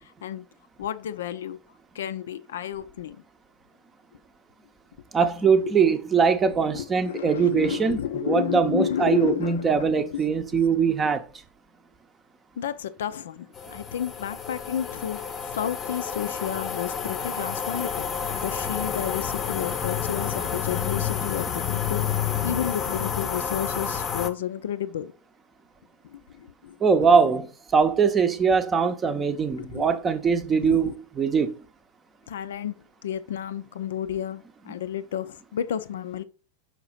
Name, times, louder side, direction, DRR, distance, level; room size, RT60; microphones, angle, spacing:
voice 1, 0.8-1.6 1.9-3.2 5.6-5.7 6.5-10.3 10.5-10.6 12.6-15.2 15.5-22.1 22.4-25.1 26.0-27.1 29.6-30.1 30.6-31.0 32.3-32.8 33.0-36.2, left 10 dB, 60° left, 0.5 m, -32 dB
voice 2, 5.1-11.2 26.8-31.5, right 5 dB, 20° right, 0.7 m, -22 dB
sound 1, 13.5-24.3, left 7 dB, 25° left, 0.8 m, -29 dB
5.9 x 4.8 x 4.0 m
figure-of-eight pair, 90°, 0 cm